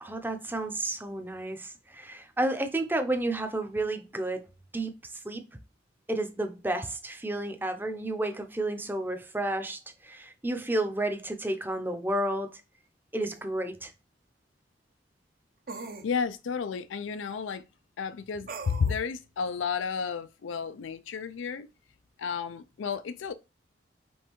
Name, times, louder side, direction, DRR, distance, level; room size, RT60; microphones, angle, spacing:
voice 1, 0.0-4.5 4.7-5.4 6.1-12.6 13.1-13.9, right 1 dB, 10° right, 0.6 m, -31 dB
sound 1, 13.3-13.4 15.7-16.1 18.5-19.0, right 4 dB, 50° right, 0.6 m, -40 dB
voice 2, 16.0-17.6 18.0-21.7 22.2-23.3, left 6 dB, 90° left, 0.4 m, -32 dB
5.4 x 3.3 x 3.0 m
head